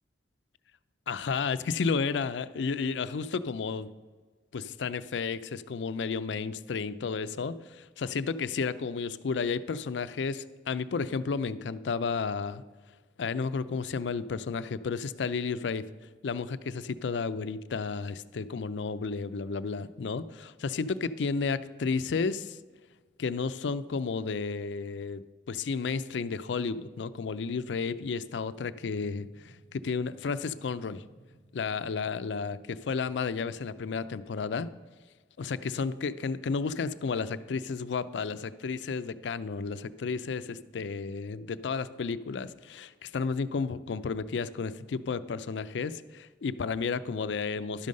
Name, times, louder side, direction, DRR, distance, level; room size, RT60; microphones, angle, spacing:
voice 1, 1.1-3.9 4.5-12.6 13.2-15.8 16.2-22.6 23.2-25.2 25.5-31.0 31.5-34.7 35.4-47.9, left 5 dB, 85° left, 14 dB, 0.4 m, -32 dB
sound 1, 28.7-34.4, right 2 dB, 75° right, 0.9 m, -59 dB
11.5 x 5.4 x 6.4 m, 1.3 s
head